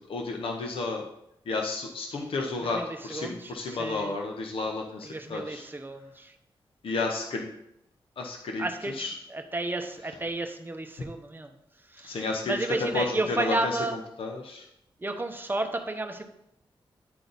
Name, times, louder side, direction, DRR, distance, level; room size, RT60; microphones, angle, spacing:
voice 1, 0.1-1.0 1.5-5.6 6.8-7.5 8.2-9.1 12.0-13.8 14.2-14.6, left 3 dB, 75° left, 2 dB, 0.8 m, -32 dB
voice 2, 2.7-4.1 5.0-6.3 8.6-11.5 11.9-14.0 15.0-16.2, right 2 dB, 20° right, 5 dB, 0.8 m, -32 dB
9.4 x 3.9 x 4.0 m, 0.80 s
wide cardioid pair, 90°, 9 cm